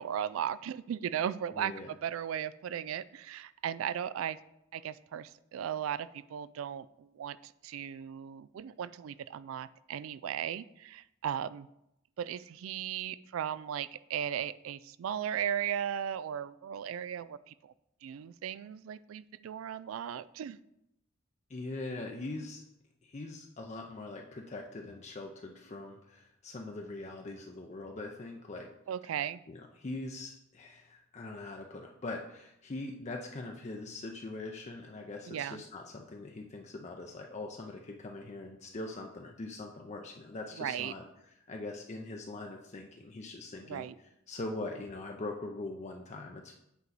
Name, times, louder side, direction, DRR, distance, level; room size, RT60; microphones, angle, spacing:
voice 1, 0.0-4.4 4.7-11.7 12.2-17.7 18.0-20.6 28.9-29.4 35.3-35.6 40.6-40.9 43.7-43.9, right 9 dB, 90° right, 17 dB, 0.3 m, -36 dB
voice 2, 1.5-1.9 21.5-22.6 23.0-28.7 29.5-41.0 41.5-43.9 44.3-46.5, left 2 dB, 35° left, 2 dB, 0.5 m, -42 dB
8.2 x 4.6 x 4.0 m, 0.81 s
head